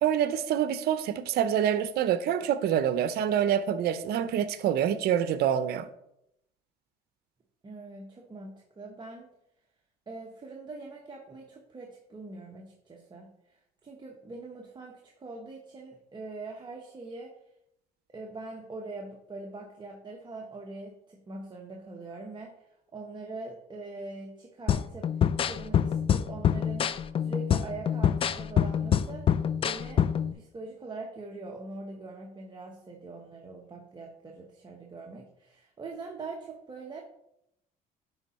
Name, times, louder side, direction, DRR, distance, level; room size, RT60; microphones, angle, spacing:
voice 1, 0.0-5.9, right 9 dB, 70° right, 0.6 m, -26 dB
voice 2, 7.6-9.3 10.1-17.3 18.1-29.3 29.6-30.0 30.3-37.0, right 3 dB, 25° right, 1.0 m, -43 dB
sound 1, 24.7-30.3, left 9 dB, 35° left, 0.3 m, -26 dB
9.9 x 3.7 x 4.1 m
cardioid pair, 110°, 17 cm